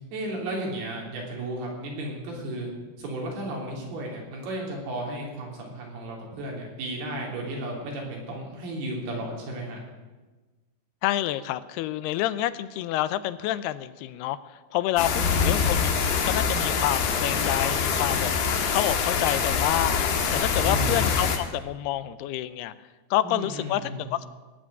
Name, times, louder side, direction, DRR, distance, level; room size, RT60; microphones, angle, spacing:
voice 1, 0.1-2.7 3.0-9.8 15.2-15.7 20.6-20.9 23.2-24.1, right 1 dB, 75° right, -1 dB, 5.2 m, -34 dB
voice 2, 11.0-15.9 16.2-20.0 20.3-22.7 23.1-24.3, left 14 dB, 85° left, 15 dB, 2.6 m, -28 dB
sound 1, 15.0-21.4, left 6 dB, 65° left, 3.0 m, -24 dB
18.5 x 7.7 x 9.2 m, 1.3 s
omnidirectional pair, 4.6 m